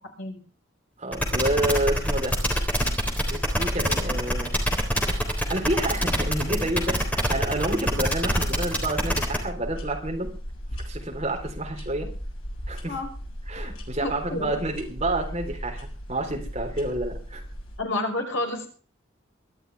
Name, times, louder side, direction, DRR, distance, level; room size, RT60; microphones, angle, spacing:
voice 1, 1.0-2.4 3.3-4.5 5.5-10.3 10.8-12.1 12.7-12.9 13.5-17.4, right 1 dB, 30° right, 2 dB, 3.9 m, -29 dB
sound 1, 1.1-9.4, equal, 5° left, 3.6 m, -25 dB
sound 2, 1.7-17.8, equal, 80° left, 6.7 m, -36 dB
voice 2, 14.0-14.6 17.8-18.7, left 2 dB, 65° left, 3 dB, 5.4 m, -29 dB
23.5 x 12.5 x 3.5 m, 0.38 s
head